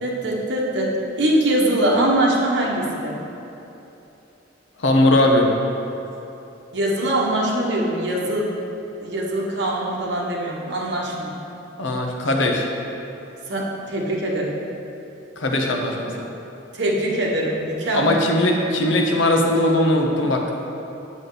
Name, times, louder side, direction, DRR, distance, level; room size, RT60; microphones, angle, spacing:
voice 1, 0.0-3.1 6.7-8.5 9.0-11.3 13.5-14.5 16.7-18.1, right 1 dB, 60° right, -3 dB, 1.4 m, -22 dB
voice 2, 4.8-5.5 11.8-12.7 15.4-16.3 17.9-20.5, left 1 dB, 75° left, 1 dB, 0.9 m, -19 dB
7.9 x 7.4 x 4.1 m, 3.0 s
head